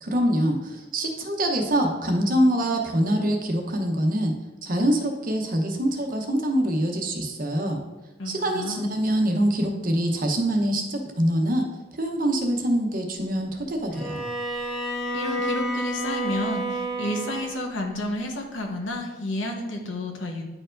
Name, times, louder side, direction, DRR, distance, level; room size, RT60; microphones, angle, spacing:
voice 1, 0.0-4.3 4.6-7.8 8.3-11.7 12.0-14.2, right 1 dB, 50° right, 3 dB, 0.9 m, -24 dB
voice 2, 8.2-8.9 15.1-20.4, left 1 dB, 85° left, 2 dB, 1.1 m, -31 dB
Bowed string instrument, 13.9-17.6, right 1 dB, ahead, 0.9 m, -30 dB
9.8 x 4.5 x 2.5 m, 1.1 s
head